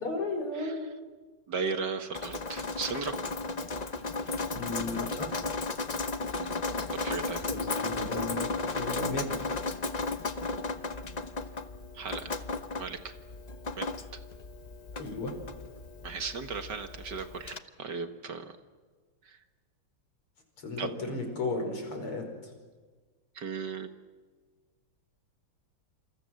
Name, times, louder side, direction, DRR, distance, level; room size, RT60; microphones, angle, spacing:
voice 1, 0.0-0.9 4.5-5.3 7.5-9.5 14.9-15.3 20.6-22.2, left 2 dB, 85° left, 4 dB, 6.0 m, -34 dB
voice 2, 1.5-3.2 6.3-6.5 7.0-7.4 11.9-12.3 12.8-13.1 13.8-13.9 16.0-18.5 19.2-19.4 20.8-20.9 23.4-23.9, right 5 dB, 55° right, 8 dB, 2.0 m, -36 dB
Drip, 2.1-17.6, left 3 dB, 50° left, 0.4 m, -35 dB
28.0 x 26.5 x 7.8 m, 1.4 s
omnidirectional pair, 2.4 m